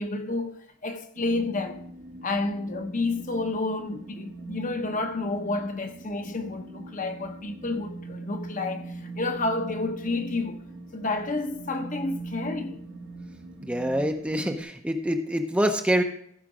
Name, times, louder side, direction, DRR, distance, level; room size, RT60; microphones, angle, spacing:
voice 1, 0.0-1.8 2.2-10.6 10.9-12.8, left 2 dB, 40° left, 0.8 m, -30 dB
sound 1, 1.1-14.6, right 2 dB, 55° right, 1.1 m, -41 dB
voice 2, 13.6-16.0, equal, 5° right, 0.6 m, -25 dB
15.0 x 5.1 x 4.9 m
head